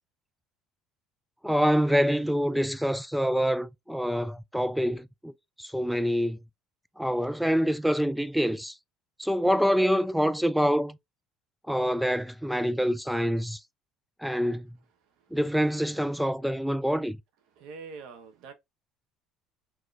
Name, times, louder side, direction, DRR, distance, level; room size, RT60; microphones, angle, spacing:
voice 1, 1.4-5.3 5.6-6.4 7.0-8.8 9.2-11.0 11.7-13.6 14.2-14.8 15.3-17.2, equal, ahead, 0.3 m, -26 dB
voice 2, 17.6-18.5, right 5 dB, 75° right, 1.1 m, -43 dB
4.4 x 3.0 x 2.4 m
cardioid pair, 115°, 0 cm